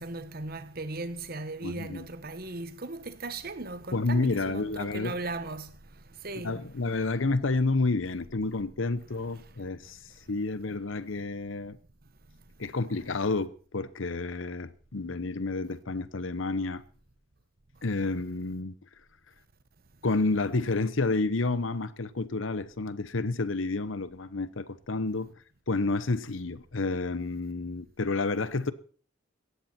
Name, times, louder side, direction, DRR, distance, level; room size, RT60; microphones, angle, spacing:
voice 1, 0.0-5.7 6.2-6.6, right 2 dB, 50° right, 1.2 m, -37 dB
voice 2, 1.6-2.0 3.9-5.1 6.4-10.0 10.3-11.8 12.6-16.8 17.8-18.7 20.0-25.3 25.7-28.7, left 3 dB, 80° left, 0.9 m, -30 dB
17.0 x 14.0 x 4.4 m
head